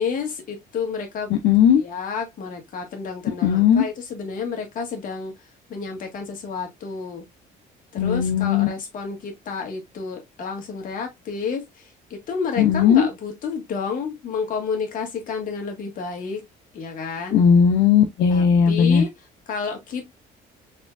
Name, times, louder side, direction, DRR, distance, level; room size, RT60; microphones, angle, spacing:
voice 1, 0.0-1.3 1.7-5.3 5.7-7.2 7.9-16.5 16.7-17.4 18.3-19.1 19.5-20.1, left 5 dB, 55° left, 1.8 m, -30 dB
voice 2, 1.3-1.8 3.4-3.8 8.0-8.7 12.6-13.1 17.3-19.0, left 7 dB, 85° left, 0.7 m, -17 dB
4.2 x 3.5 x 2.5 m
cardioid pair, 110°, 17 cm